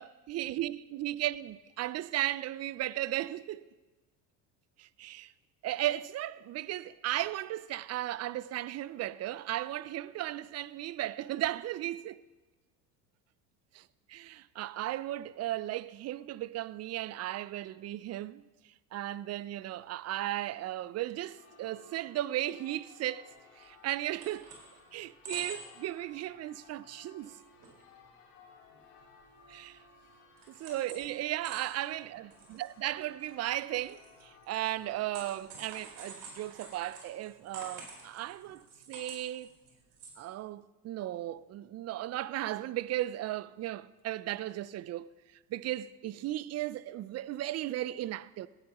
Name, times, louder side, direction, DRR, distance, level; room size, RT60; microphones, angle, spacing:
voice 1, 0.0-3.7 4.8-5.3 5.6-12.2 13.7-13.8 14.1-18.4 18.9-23.3 23.6-24.5 24.9-27.3 29.5-29.8 30.6-32.3 32.6-39.5 40.2-45.1 45.5-48.5, right 14 dB, 35° right, 0.4 m, -36 dB
Church bell, 21.3-37.0, left 3 dB, 70° left, 3.3 m, -59 dB
sound 1, 23.6-23.7 23.9-24.7 25.1-25.8 26.1-26.3 26.8-26.9 27.2-27.8 28.0-28.1 28.7-29.8 30.1-31.1 31.4-40.1, right 3 dB, 55° right, 5.0 m, -48 dB
18.0 x 13.0 x 3.0 m
hypercardioid pair, 75°, 47 cm